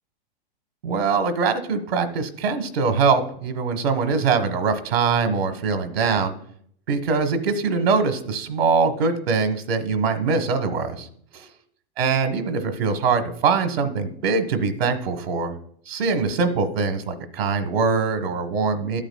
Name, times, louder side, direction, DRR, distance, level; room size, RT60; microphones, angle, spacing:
voice 1, 0.8-6.3 6.9-11.1 11.3-11.5 12.0-15.5 15.8-19.0, right 5 dB, 85° right, 8 dB, 1.1 m, -23 dB
13.0 x 8.9 x 2.2 m, 0.65 s
hypercardioid pair, 120°, 29 cm